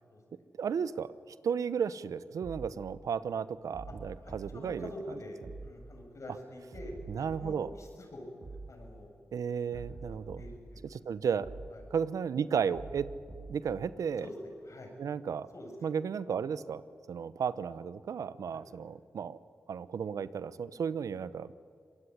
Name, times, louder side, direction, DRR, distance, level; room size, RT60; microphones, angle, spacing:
voice 1, 0.6-4.9 7.1-7.7 9.3-10.4 10.9-11.5 11.9-13.1 13.5-14.3 15.0-15.5 15.8-16.8 17.1-19.4 19.7-21.6, right 7 dB, 80° right, 16 dB, 0.8 m, -34 dB
sound 1, 2.4-2.7 3.7-4.6 5.4-5.7 6.7-7.6 8.4-8.7 9.7-10.6 11.4-11.7 12.7-13.6, right 3 dB, 55° right, 7.3 m, -45 dB
voice 2, 4.2-8.3 8.7-9.1 9.7-9.9 10.4-11.2 11.7-11.8 14.2-14.9 15.5-15.7 18.5-18.6, left 1 dB, 65° left, 2 dB, 8.0 m, -46 dB
25.5 x 20.5 x 9.9 m, 2.2 s
cardioid pair, 40°, 6 cm